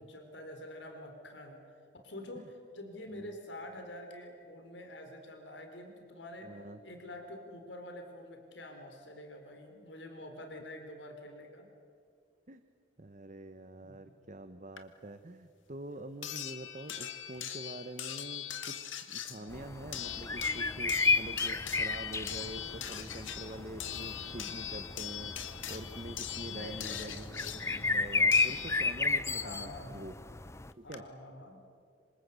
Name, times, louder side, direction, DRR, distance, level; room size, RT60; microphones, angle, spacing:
voice 1, 0.0-1.6 1.9-6.6 6.8-11.7 13.8-13.9 19.3-19.6 26.4-27.5 29.4-30.0 30.8-31.6, left 1 dB, 70° left, 4 dB, 3.9 m, -47 dB
voice 2, 6.4-6.8 12.5-12.6 13.0-30.1 30.8-31.0, right 1 dB, 40° right, 9 dB, 1.0 m, -46 dB
sound 1, 14.8-14.9 16.2-29.2 30.5-30.6 30.9-31.0, left 10 dB, 90° left, 2.1 m, -41 dB
sound 2, 19.5-30.7, left 3 dB, 15° left, 0.6 m, -33 dB
27.0 x 26.5 x 8.3 m, 2.3 s
head